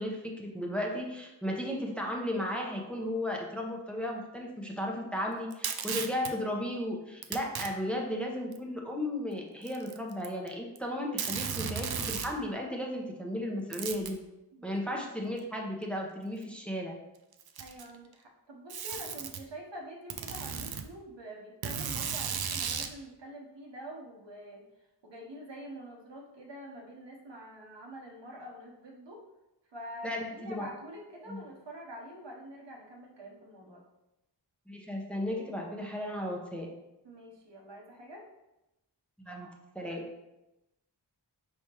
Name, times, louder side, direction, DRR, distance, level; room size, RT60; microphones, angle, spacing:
voice 1, 0.0-14.2 14.6-16.9 30.0-30.7 31.3-31.4 34.7-36.7 39.2-40.1, left 1 dB, 5° left, 0 dB, 0.7 m, -35 dB
Packing tape duct tape, 5.5-6.3 7.2-7.7 8.5-8.6 9.6-10.5 10.8-10.9 11.2-12.3 13.7-14.2 15.4-15.5 16.4-16.5 17.3-18.0 18.7-19.4 20.1-20.8 21.6-22.9, right 7 dB, 60° right, 0.5 m, -35 dB
voice 2, 14.5-15.0 17.6-24.7 25.0-29.2 29.7-33.8 37.0-38.2, equal, 80° right, -1 dB, 0.9 m, -46 dB
4.8 x 3.4 x 2.9 m, 0.94 s
wide cardioid pair, 45°, 43 cm